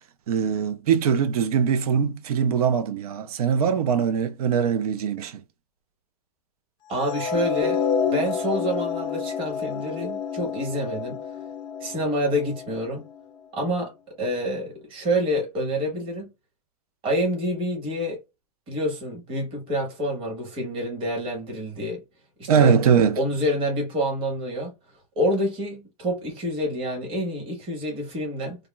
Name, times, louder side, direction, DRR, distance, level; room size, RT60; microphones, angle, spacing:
voice 1, 0.3-5.4 22.5-23.2, right 7 dB, 70° right, 0.5 m, -22 dB
voice 2, 6.9-7.8 8.1-11.2 11.8-13.0 13.5-13.9 14.2-16.3 17.0-18.2 18.7-22.0 22.4-22.7 23.1-24.7 25.2-28.6, equal, 25° right, 1.2 m, -27 dB
sound 1, 7.0-13.2, left 6 dB, 25° left, 0.4 m, -29 dB
3.5 x 2.0 x 2.2 m
hypercardioid pair, 130°, 20 cm